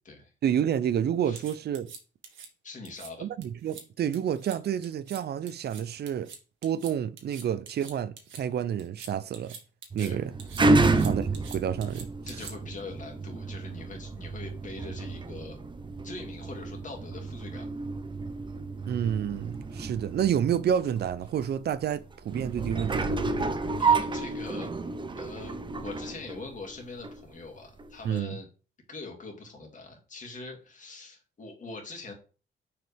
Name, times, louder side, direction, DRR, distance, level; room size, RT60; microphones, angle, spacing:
voice 1, 0.4-1.9 3.2-6.3 6.6-9.6 9.9-10.3 11.0-12.1 18.9-23.5 28.0-28.4, right 9 dB, 55° right, 0.6 m, -29 dB
sound 1, 1.4-2.5 2.8-3.1 3.4-3.8 4.1-4.6 4.8-5.2 5.5-8.4 8.8-10.1 10.4-12.8, right 6 dB, 75° right, 1.5 m, -45 dB
voice 2, 2.6-3.3 10.0-10.2 10.7-10.9 12.3-15.6 16.0-17.7 23.8-24.7 25.2-28.5 28.9-32.1, left 3 dB, 40° left, 2.3 m, -42 dB
sound 2, 9.9-27.2 27.8-27.9, right 3 dB, 25° right, 0.8 m, -30 dB
6.3 x 4.9 x 3.4 m
cardioid pair, 90°, 20 cm